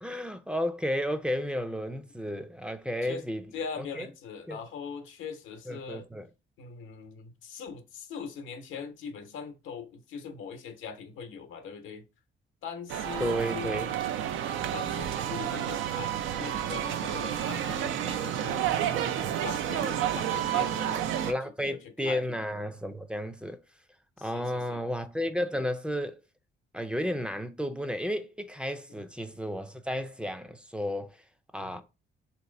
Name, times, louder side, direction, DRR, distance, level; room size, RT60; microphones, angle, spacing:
voice 1, 0.0-3.4 3.8-4.1 4.5-4.6 5.7-6.3 13.2-13.9 19.2-19.4 21.2-23.6 24.2-26.2 26.7-31.2 31.5-31.8, equal, 5° right, 0.4 m, -32 dB
voice 2, 3.5-6.1 6.6-12.1 12.6-13.9 14.3-18.7 19.4-21.3 21.6-21.8 22.0-22.2 24.2-24.8 28.9-29.0 31.6-31.8, left 6 dB, 80° left, 0.8 m, -41 dB
sound 1, 12.9-21.3, right 10 dB, 80° right, 0.4 m, -30 dB
3.1 x 2.9 x 3.8 m
cardioid pair, 90°, 20 cm